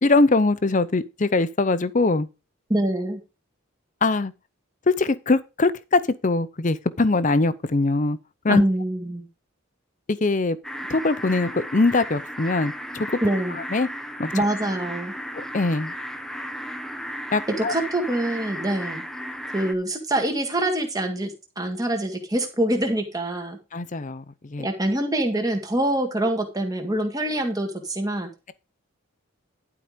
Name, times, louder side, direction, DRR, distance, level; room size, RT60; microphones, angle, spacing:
voice 1, 0.0-2.3 4.0-4.3 4.9-8.2 8.4-8.6 10.1-10.6 10.9-13.1 13.7-13.9 14.2-14.3 15.5-15.9 17.3-17.7 23.7-24.2 24.5-24.7, left 3 dB, 35° left, 0.6 m, -22 dB
voice 2, 2.7-3.2 8.5-9.3 13.2-13.6 14.3-15.1 17.5-19.0 19.5-23.6 24.6-28.3, right 1 dB, 15° right, 1.9 m, -25 dB
sound 1, 10.6-19.7, equal, ahead, 0.8 m, -34 dB
11.5 x 4.9 x 5.1 m
head